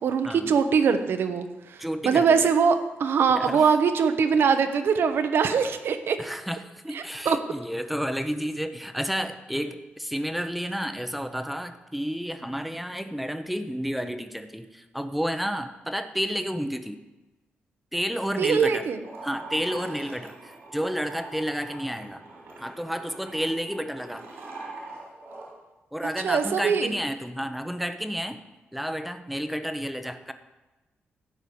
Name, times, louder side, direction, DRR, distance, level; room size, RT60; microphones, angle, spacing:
voice 1, 0.0-6.2 6.9-7.4 18.4-19.0 26.2-26.9, right 6 dB, 70° right, 8 dB, 1.0 m, -22 dB
voice 2, 1.8-2.3 3.3-3.7 6.2-17.0 17.9-18.9 19.2-22.2 22.6-24.3 25.9-28.4 28.7-30.3, equal, ahead, 8 dB, 0.8 m, -31 dB
sound 1, 19.0-25.5, right 2 dB, 85° right, 4.1 m, -43 dB
12.5 x 4.9 x 8.7 m, 1.1 s
cardioid pair, 115°, 4 cm